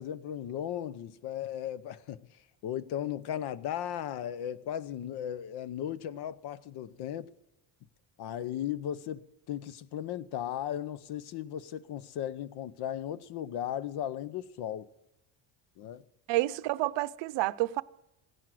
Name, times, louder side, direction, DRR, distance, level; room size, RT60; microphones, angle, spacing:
voice 1, 0.0-2.3 2.6-7.3 8.2-14.9 15.8-16.0, left 10 dB, 55° left, 0.8 m, -36 dB
voice 2, 16.3-17.8, right 17 dB, 65° right, 0.7 m, -29 dB
16.0 x 11.0 x 7.6 m
cardioid pair, 165°, 47 cm